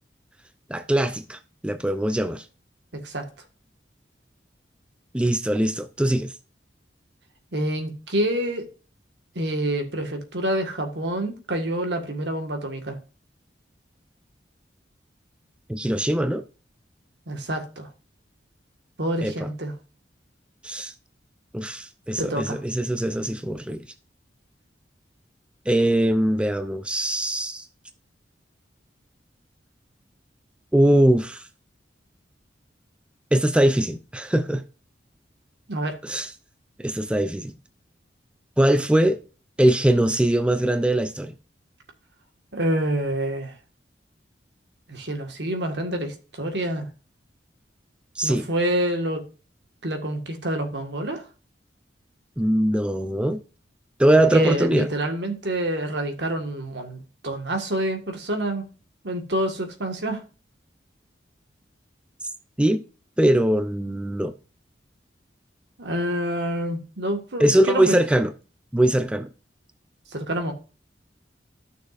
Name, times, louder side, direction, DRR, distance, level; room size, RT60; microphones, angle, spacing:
voice 1, 0.7-2.5 5.1-6.3 15.7-16.4 19.2-19.3 20.6-20.9 21.5-23.8 25.7-27.7 30.7-31.4 33.3-34.6 36.0-36.3 36.8-37.5 38.6-39.2 39.6-41.3 48.2-48.5 52.4-53.4 54.0-54.9 62.6-62.8 63.2-64.3 67.4-68.3 68.7-69.3, right 1 dB, 5° right, 0.4 m, -21 dB
voice 2, 2.9-3.2 7.5-8.7 9.3-13.0 17.3-17.9 19.0-19.7 22.2-22.6 35.7-35.9 42.5-43.5 44.9-46.9 48.2-49.2 49.8-51.2 54.2-58.7 59.0-60.2 65.8-68.0 70.1-70.5, right 1 dB, 70° right, 1.7 m, -27 dB
12.5 x 6.4 x 2.5 m
head